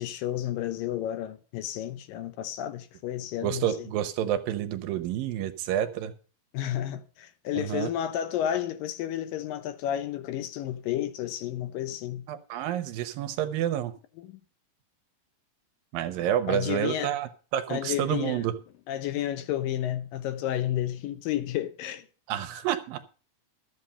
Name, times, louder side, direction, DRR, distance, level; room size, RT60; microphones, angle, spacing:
voice 1, 0.0-3.9 6.5-12.2 14.2-14.4 16.5-17.1 17.7-18.5 18.9-22.1, left 11 dB, 75° left, 2.4 m, -31 dB
voice 2, 3.4-6.1 7.5-7.9 12.3-13.9 15.9-18.5 22.3-23.0, right 11 dB, 75° right, 2.6 m, -29 dB
13.5 x 8.1 x 5.6 m
omnidirectional pair, 4.2 m